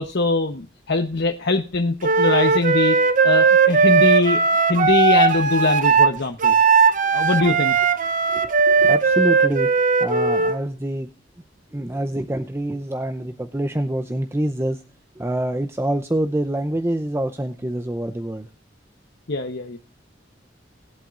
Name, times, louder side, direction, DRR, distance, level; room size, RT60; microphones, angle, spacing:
voice 1, 0.0-3.0 3.2-4.4 4.7-6.5 7.1-7.7 19.3-19.8, left 3 dB, 60° left, 4 dB, 1.0 m, -22 dB
Wind instrument woodwind instrument, 2.0-10.6, right 5 dB, 45° right, 0.8 m, -17 dB
voice 2, 8.3-9.7 10.0-11.1 11.7-14.8 15.2-18.5, right 1 dB, 15° right, 6 dB, 0.6 m, -26 dB
20.0 x 8.4 x 2.5 m, 0.37 s
head